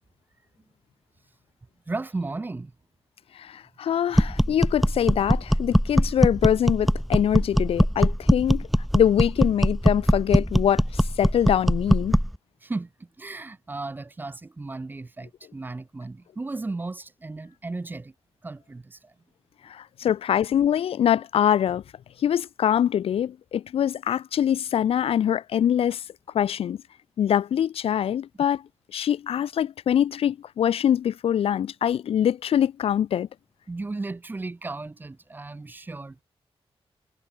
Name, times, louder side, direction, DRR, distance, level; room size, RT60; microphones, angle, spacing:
voice 1, 1.9-2.7 12.6-18.1 18.4-19.1 33.7-36.2, right 3 dB, 20° right, 2.1 m, -35 dB
voice 2, 3.4-8.6 8.9-12.1 19.7-21.8 22.2-26.0 26.3-26.8 27.2-28.6 28.9-33.3, left 9 dB, 70° left, 0.6 m, -24 dB
sound 1, 4.1-12.4, equal, ahead, 1.0 m, -21 dB
wide cardioid pair, 175°, 10 cm